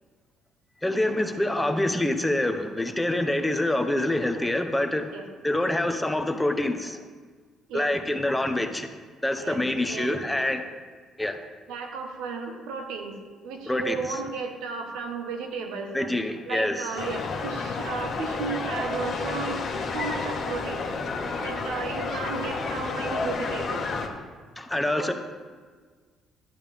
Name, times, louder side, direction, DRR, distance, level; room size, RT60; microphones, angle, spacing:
voice 1, 0.8-5.1 5.4-7.0 7.7-8.9 9.2-10.6 11.2-11.4 13.7-14.0 15.9-17.0 24.6-25.1, left 1 dB, 10° left, 6 dB, 1.0 m, -26 dB
voice 2, 9.4-10.4 11.7-16.1 16.5-19.6 19.9-20.9 21.4-23.9 24.9-25.1, right 5 dB, 85° right, 3 dB, 1.4 m, -34 dB
sound 1, 17.0-24.1, left 4 dB, 55° left, 1.5 m, -31 dB
11.0 x 9.5 x 3.6 m, 1.5 s
cardioid pair, 85°, 0 cm